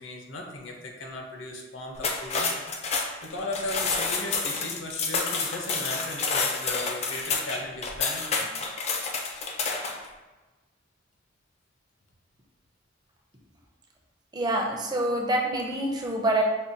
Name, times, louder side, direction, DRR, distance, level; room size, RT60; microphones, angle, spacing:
voice 1, 0.0-2.7 3.2-8.5, left 2 dB, 75° left, 1 dB, 0.7 m, -36 dB
sound 1, 2.0-10.1, left 4 dB, 35° left, 0.4 m, -29 dB
voice 2, 14.3-16.4, right 1 dB, 20° right, 0 dB, 0.5 m, -26 dB
5.3 x 2.2 x 2.6 m, 1.2 s
head